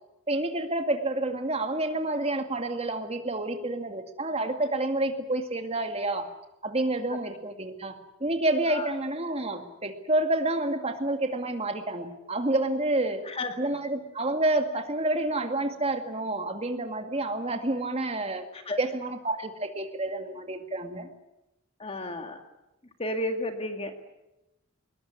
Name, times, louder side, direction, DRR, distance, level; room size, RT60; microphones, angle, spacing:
voice 1, 0.3-6.3 6.6-13.3 13.6-18.4 18.8-21.1, right 2 dB, 30° right, 6 dB, 2.2 m, -29 dB
voice 2, 13.3-13.6 18.5-18.8 21.8-22.4 23.0-24.0, left 1 dB, 30° left, 6 dB, 2.2 m, -32 dB
21.5 x 20.5 x 9.5 m, 0.92 s
head